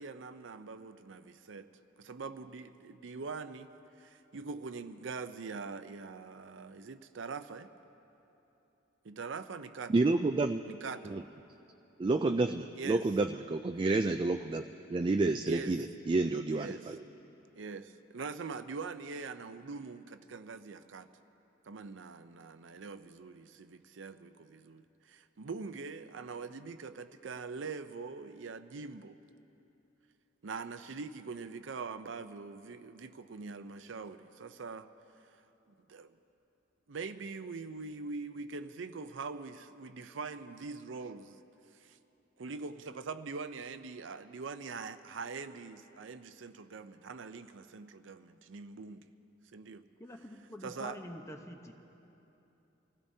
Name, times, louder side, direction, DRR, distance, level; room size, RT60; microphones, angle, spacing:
voice 1, 0.0-1.7 2.0-3.7 4.0-7.7 9.0-9.9 10.7-11.1 12.7-13.1 15.5-15.8 16.5-16.9 17.6-21.1 21.6-29.2 30.4-34.9 35.7-36.2 36.9-41.4 41.7-42.0 42.4-49.0 49.5-49.8 50.6-51.0, right 4 dB, 80° right, 10 dB, 0.6 m, -43 dB
voice 2, 9.9-10.6 11.1-11.2 12.0-17.0, right 3 dB, 25° right, 6 dB, 0.3 m, -29 dB
voice 3, 50.0-51.8, left 1 dB, 15° left, 4 dB, 0.8 m, -46 dB
26.0 x 16.0 x 2.8 m, 3.0 s
head